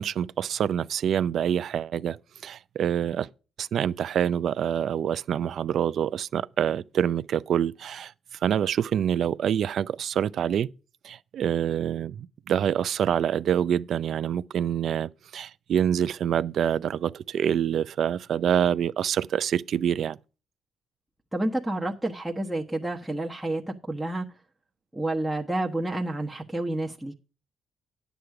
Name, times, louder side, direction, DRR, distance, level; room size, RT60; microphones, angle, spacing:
voice 1, 0.0-2.2 2.4-3.3 3.6-8.1 8.4-10.7 11.0-20.2, right 9 dB, 65° right, 0.5 m, -26 dB
voice 2, 21.3-24.3 24.9-27.1, right 1 dB, 5° right, 1.2 m, -29 dB
10.5 x 8.1 x 4.8 m
cardioid pair, 90°, 0 cm